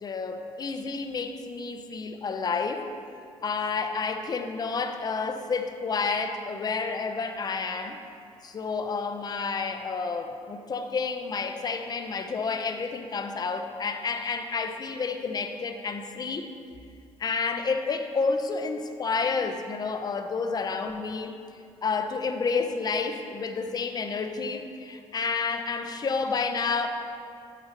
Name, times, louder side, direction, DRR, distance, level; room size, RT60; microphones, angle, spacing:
voice 1, 0.0-2.9 3.4-8.0 8.4-16.5 17.2-21.4 21.8-26.9, left 4 dB, 35° left, 6 dB, 0.7 m, -30 dB
8.8 x 8.2 x 3.0 m, 2.4 s
cardioid pair, 90°, 12 cm